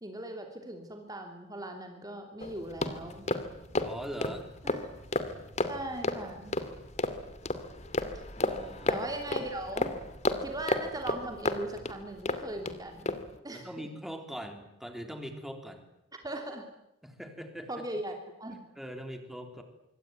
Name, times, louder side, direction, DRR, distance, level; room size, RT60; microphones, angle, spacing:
voice 1, 0.0-3.3 4.6-4.9 5.7-6.5 8.9-9.9 10.4-13.7 16.2-16.7 17.7-18.6, right 1 dB, 20° right, 4 dB, 2.9 m, -39 dB
sound 1, 2.4-12.7 13.0-13.3, left 2 dB, 35° left, 2.4 m, -33 dB
voice 2, 3.8-4.5 8.4-9.0 13.5-15.8 17.0-17.8 18.8-19.6, equal, ahead, 5 dB, 3.5 m, -41 dB
25.5 x 24.5 x 9.4 m, 0.86 s
head